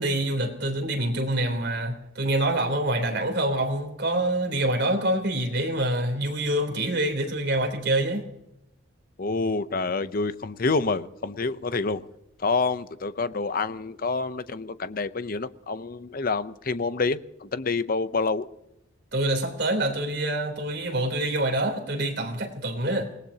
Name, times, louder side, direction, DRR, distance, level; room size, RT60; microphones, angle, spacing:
voice 1, 0.0-8.2 19.1-23.1, right 1 dB, 55° right, 3.4 m, -26 dB
voice 2, 9.2-12.1 12.4-18.5, left 3 dB, 45° left, 0.7 m, -27 dB
26.5 x 19.0 x 2.8 m
head